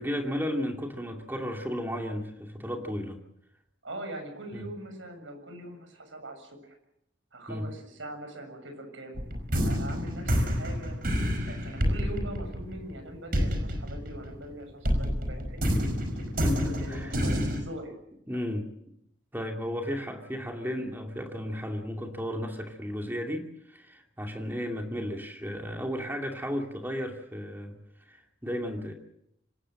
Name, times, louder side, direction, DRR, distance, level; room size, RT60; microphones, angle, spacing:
voice 1, 0.0-3.2 4.5-4.6 7.5-7.7 16.4-17.1 18.3-18.7 19.3-27.8 28.1-28.9, equal, 10° right, 2 dB, 2.6 m, -34 dB
voice 2, 3.8-6.7 7.3-9.2 9.6-11.0 11.5-18.0 24.5-24.7, right 1 dB, 90° right, 6 dB, 7.1 m, -42 dB
sound 1, 9.1-14.5 14.8-17.6, equal, 50° right, 5.1 m, -28 dB
25.5 x 19.0 x 7.7 m, 0.77 s
head